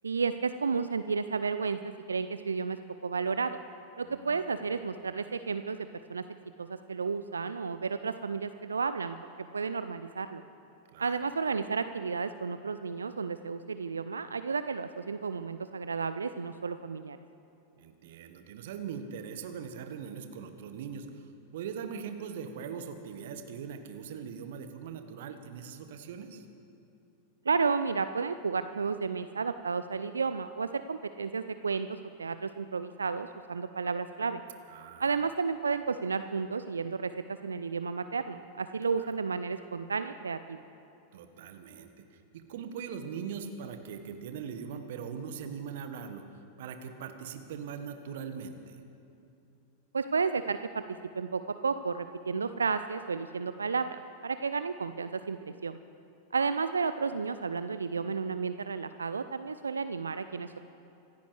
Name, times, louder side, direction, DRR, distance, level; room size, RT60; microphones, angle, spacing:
voice 1, 0.0-2.8 3.0-3.6 4.0-6.2 6.6-9.2 9.5-10.4 11.0-17.2 27.5-34.4 35.0-37.1 37.4-40.6 49.9-50.8 51.1-55.8 56.3-60.6, right 5 dB, 75° right, 11 dB, 0.4 m, -32 dB
voice 2, 4.0-4.6 10.9-11.2 17.8-21.2 21.5-26.4 34.7-35.1 39.0-39.1 41.1-46.2 46.6-48.8, right 7 dB, 55° right, 8 dB, 1.4 m, -41 dB
26.0 x 14.5 x 3.3 m, 2.9 s
figure-of-eight pair, 90°, 0 cm